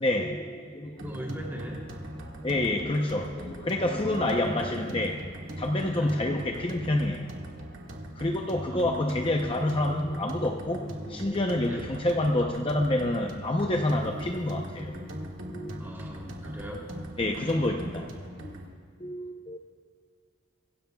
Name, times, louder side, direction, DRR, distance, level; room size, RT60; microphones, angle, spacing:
voice 1, 0.0-1.1 2.4-7.3 8.2-15.0 15.5-15.8 17.2-18.1 18.4-18.6 19.0-19.6, left 1 dB, 25° left, 2 dB, 0.7 m, -28 dB
voice 2, 1.0-1.8 5.9-6.2 8.3-8.8 11.7-11.9 15.7-16.8, equal, 10° right, -2 dB, 3.0 m, -40 dB
sound 1, 1.0-18.7, equal, 85° right, 1.9 m, -40 dB
25.0 x 16.5 x 2.3 m, 2.2 s
head